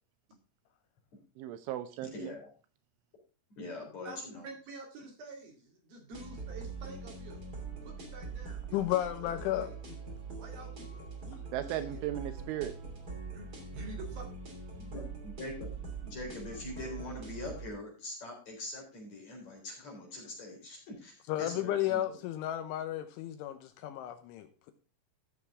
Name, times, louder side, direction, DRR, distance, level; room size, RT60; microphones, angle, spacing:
voice 1, 1.4-2.3 11.5-12.7, right 12 dB, 80° right, 10 dB, 3.1 m, -36 dB
voice 2, 2.0-2.5 3.6-4.4 14.8-15.7 16.0-22.0, left 2 dB, 35° left, -1 dB, 4.6 m, -43 dB
voice 3, 4.4-7.4 7.8-9.8 10.4-12.0 13.3-14.2, right 2 dB, 55° right, 1 dB, 3.5 m, -49 dB
sound 1, 6.1-17.7, right 4 dB, 30° right, 1.8 m, -43 dB
voice 4, 8.7-9.9 21.3-24.7, left 13 dB, 80° left, 9 dB, 3.1 m, -33 dB
14.5 x 7.1 x 3.6 m, 0.36 s
omnidirectional pair, 5.9 m